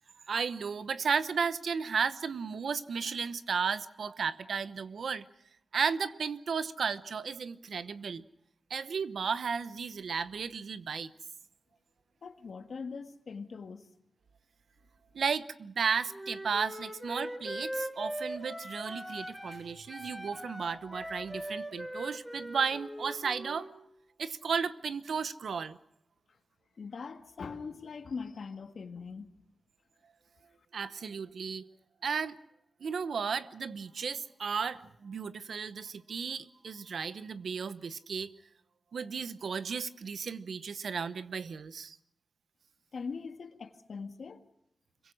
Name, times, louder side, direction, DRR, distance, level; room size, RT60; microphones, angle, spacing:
voice 1, 0.3-5.2 5.7-8.2 8.7-11.1 15.1-23.7 24.2-25.8 30.7-31.6 32.0-32.4 32.8-38.3 38.9-42.0, right 6 dB, 85° right, 0.9 m, -34 dB
voice 2, 12.2-13.8 26.8-29.3 42.9-44.4, left 5 dB, 75° left, 1.8 m, -41 dB
Wind instrument woodwind instrument, 16.1-19.6 19.9-23.7, equal, 10° right, 5.0 m, -40 dB
26.5 x 22.5 x 6.3 m
wide cardioid pair, 80°, 0 cm